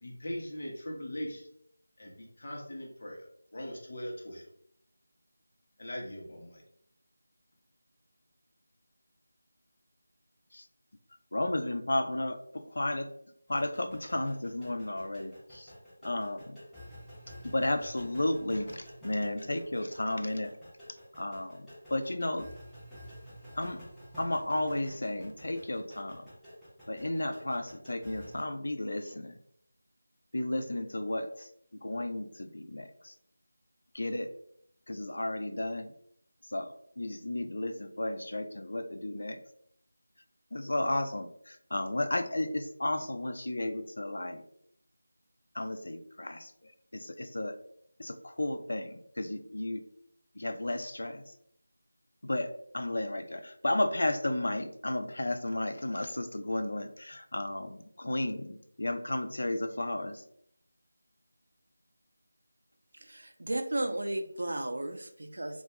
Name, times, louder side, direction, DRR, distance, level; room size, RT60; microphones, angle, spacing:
voice 1, 0.0-1.5 2.0-3.2 3.5-4.5 5.8-6.6, equal, 45° left, -1 dB, 0.7 m, -40 dB
voice 2, 11.3-13.1 13.5-15.7 16.0-16.6 17.4-20.5 21.1-22.5 23.6-23.8 24.2-26.3 26.9-29.4 30.3-33.1 33.9-34.3 34.9-35.9 36.5-39.4 40.5-44.4 45.5-47.6 48.0-49.8 50.4-51.2 52.2-60.2, left 1 dB, 65° left, 7 dB, 0.3 m, -33 dB
sound 1, 13.5-28.4, equal, 5° left, 0.5 m, -50 dB
voice 3, 62.9-65.6, right 1 dB, 65° right, 6 dB, 0.4 m, -34 dB
2.3 x 2.2 x 2.9 m, 0.69 s
figure-of-eight pair, 175°, 0 cm